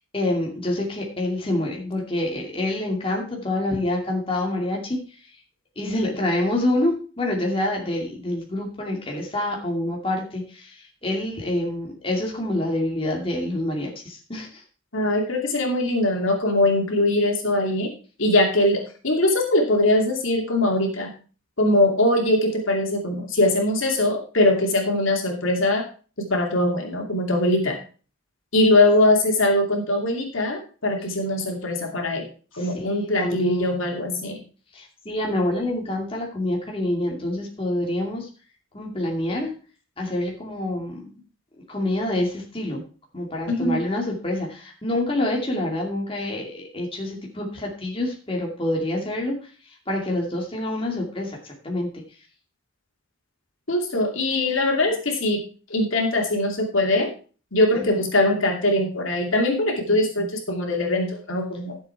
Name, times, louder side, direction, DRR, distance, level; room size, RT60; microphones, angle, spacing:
voice 1, 0.1-5.0 5.8-14.6 32.6-33.7 34.7-38.3 38.7-39.5 40.0-41.2 41.7-42.8 43.1-49.3 49.9-51.9 57.7-58.0, left 1 dB, 25° left, -1 dB, 2.4 m, -27 dB
voice 2, 14.9-17.9 18.2-21.1 21.6-25.8 26.2-27.8 28.5-32.2 32.5-34.4 43.5-43.8 53.7-55.4 55.7-57.1 57.5-61.8, left 1 dB, 75° left, 1 dB, 2.7 m, -21 dB
12.0 x 7.4 x 4.6 m, 0.38 s
head